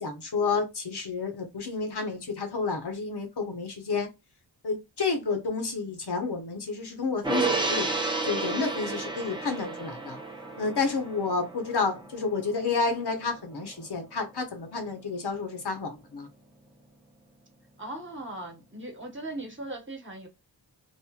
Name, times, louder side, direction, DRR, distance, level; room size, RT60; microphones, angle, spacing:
voice 1, 0.0-4.1 4.6-7.9 8.2-10.2 10.6-16.3, left 4 dB, 60° left, 1.0 m, -30 dB
Gong, 7.2-13.9 14.2-14.3, right 3 dB, 10° right, 0.6 m, -32 dB
voice 2, 17.8-20.3, right 2 dB, 25° right, 1.1 m, -38 dB
3.1 x 2.5 x 2.3 m
wide cardioid pair, 95°, 44 cm